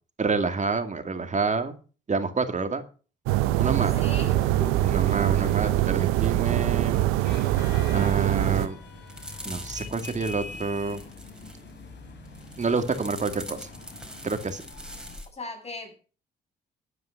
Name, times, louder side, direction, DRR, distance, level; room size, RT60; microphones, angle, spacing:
voice 1, 0.2-1.8 2.1-2.8 3.6-3.9 4.8-7.0 7.9-8.8 9.4-11.0 12.6-13.7 14.2-14.6, right 4 dB, 35° right, 2.4 m, -28 dB
sound 1, 3.3-8.7, right 15 dB, 80° right, 0.9 m, -23 dB
sound 2, 3.9-15.2, left 3 dB, 55° left, 4.4 m, -44 dB
voice 2, 3.9-4.8 15.3-16.0, left 2 dB, 30° left, 7.7 m, -37 dB
Basket Creak, 6.2-6.5 6.8-7.5 7.8-8.2 8.6-11.8 12.2-15.3, equal, 5° right, 4.6 m, -43 dB
11.5 x 9.5 x 5.9 m
hypercardioid pair, 55°, 21 cm